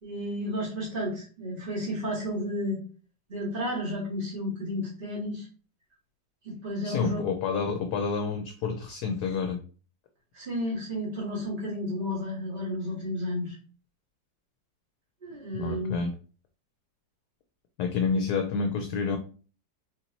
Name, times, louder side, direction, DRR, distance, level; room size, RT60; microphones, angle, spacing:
voice 1, 0.0-2.8 3.3-5.5 6.4-7.2 10.3-13.6 15.2-16.0, left 1 dB, 30° right, -6 dB, 2.3 m, -32 dB
voice 2, 6.8-9.6 15.5-16.1 17.8-19.2, left 5 dB, 70° left, 5 dB, 1.1 m, -29 dB
4.4 x 4.0 x 2.9 m, 0.39 s
omnidirectional pair, 2.0 m